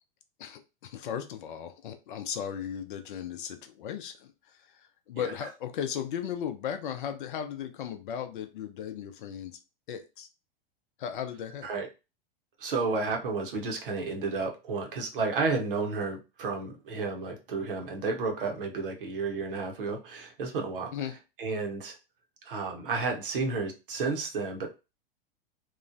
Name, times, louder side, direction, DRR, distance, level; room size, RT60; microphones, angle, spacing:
voice 1, 0.4-4.3 5.1-9.6 9.9-10.3 11.0-11.7 20.9-21.1, left 9 dB, 60° left, 7 dB, 0.6 m, -36 dB
voice 2, 12.6-20.9 21.4-22.0 22.4-24.7, right 4 dB, 65° right, 2 dB, 0.9 m, -31 dB
3.0 x 2.1 x 2.5 m, 0.28 s
figure-of-eight pair, 95°, 29 cm